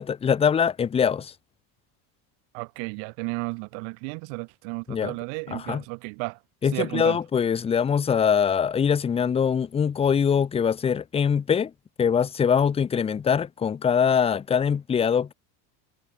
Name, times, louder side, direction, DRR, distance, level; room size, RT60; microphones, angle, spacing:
voice 1, 0.0-1.3 4.9-5.2 5.5-5.8 6.6-11.7 12.0-15.3, left 7 dB, 15° left, 0.4 m, -23 dB
voice 2, 2.5-6.4 6.7-7.2, right 40 dB or more, 75° right, 0.7 m, -33 dB
cardioid pair, 140°, 44 cm